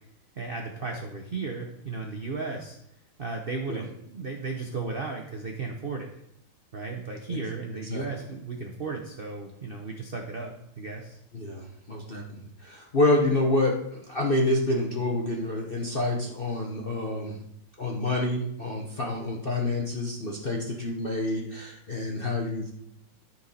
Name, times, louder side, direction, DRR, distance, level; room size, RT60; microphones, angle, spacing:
voice 1, 0.4-2.8 3.2-6.1 6.7-11.2, right 4 dB, 70° right, 2 dB, 0.5 m, -35 dB
voice 2, 11.3-17.4 17.8-22.7, left 2 dB, 45° left, -1 dB, 0.7 m, -28 dB
13.0 x 4.5 x 4.1 m, 0.75 s
omnidirectional pair, 2.4 m